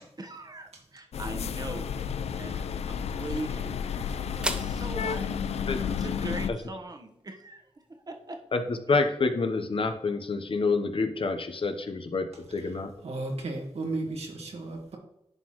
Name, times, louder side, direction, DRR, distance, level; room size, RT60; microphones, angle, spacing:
voice 1, 0.2-3.8 4.1-5.3 5.8-8.4 8.9-9.0, right 2 dB, 40° right, 5 dB, 1.2 m, -40 dB
sound 1, 1.1-6.5, left 7 dB, 80° left, 0.4 m, -32 dB
sound 2, 1.9-10.1, right 1 dB, 10° right, 1.0 m, -43 dB
voice 2, 8.5-12.9, left 3 dB, 55° left, 7 dB, 0.9 m, -28 dB
voice 3, 13.0-15.0, right 2 dB, 80° right, 1 dB, 1.8 m, -34 dB
10.5 x 4.4 x 3.1 m, 0.80 s
cardioid pair, 70°, 11 cm